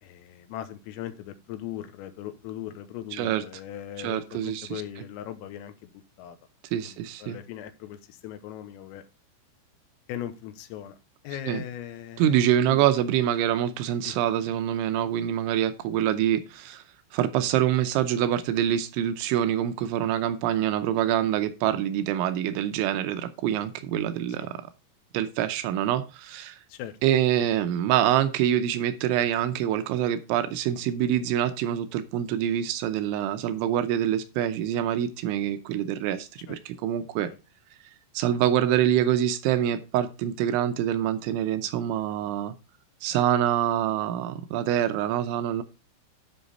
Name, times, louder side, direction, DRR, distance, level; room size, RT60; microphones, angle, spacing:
voice 1, 0.0-6.4 6.8-9.1 10.1-11.0 11.2-12.9 14.0-14.2 24.4-24.5 26.7-27.0 36.5-36.6, left 11 dB, 85° left, 3.6 m, -39 dB
voice 2, 3.1-3.4 4.0-4.8 6.7-7.4 11.5-11.6 12.2-16.8 17.1-24.6 25.1-26.6 27.0-37.3 38.1-42.5 43.0-45.6, right 11 dB, 80° right, 2.9 m, -25 dB
12.0 x 5.6 x 4.1 m
omnidirectional pair, 5.9 m